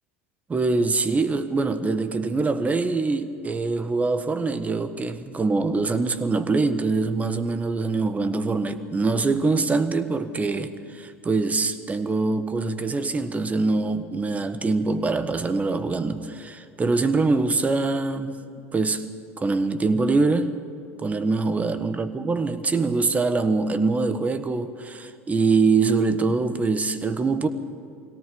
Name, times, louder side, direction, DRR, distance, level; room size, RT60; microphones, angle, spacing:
voice 1, 0.5-18.4 18.7-19.0 19.4-20.5 21.0-27.5, right 3 dB, 20° right, 1.4 m, -24 dB
22.0 x 17.5 x 7.0 m
hypercardioid pair, 80°, 7 cm